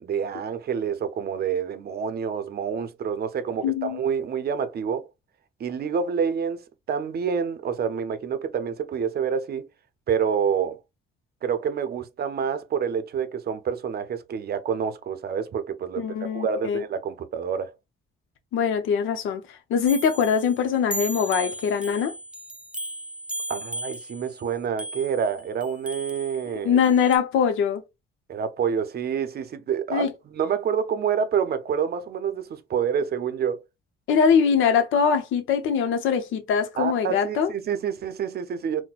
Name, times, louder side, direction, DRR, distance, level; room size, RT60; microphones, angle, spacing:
voice 1, 0.0-5.1 5.6-6.6 6.9-9.7 10.1-10.8 11.4-16.1 16.3-17.7 23.5-26.8 28.3-30.1 30.3-33.6 36.8-38.8, right 7 dB, 50° right, 0.6 m, -27 dB
voice 2, 3.6-4.0 16.0-16.8 18.5-19.4 19.7-22.1 26.4-27.8 29.9-30.1 34.1-37.5, left 7 dB, 80° left, 0.7 m, -22 dB
sound 1, 19.9-27.2, right 1 dB, 5° right, 0.4 m, -36 dB
4.1 x 2.1 x 2.3 m
cardioid pair, 90°, 20 cm